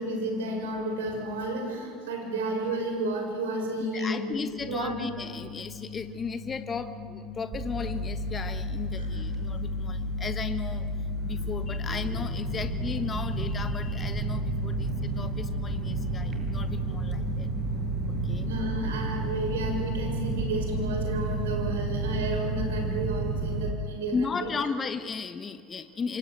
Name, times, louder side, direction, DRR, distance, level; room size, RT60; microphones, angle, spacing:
voice 1, 0.0-4.9 9.0-9.2 18.4-24.1 24.4-24.5, right 1 dB, 75° right, 3 dB, 7.0 m, -32 dB
voice 2, 3.9-10.9 11.2-17.5 18.1-18.5 24.1-26.2, left 5 dB, 30° left, 9 dB, 1.4 m, -35 dB
sound 1, 4.6-23.0, left 5 dB, 65° left, 6.9 m, -42 dB
sound 2, 7.5-23.7, right 2 dB, 40° right, 6.5 m, -31 dB
27.5 x 26.0 x 7.7 m, 2.2 s
hypercardioid pair, 70°, 0 cm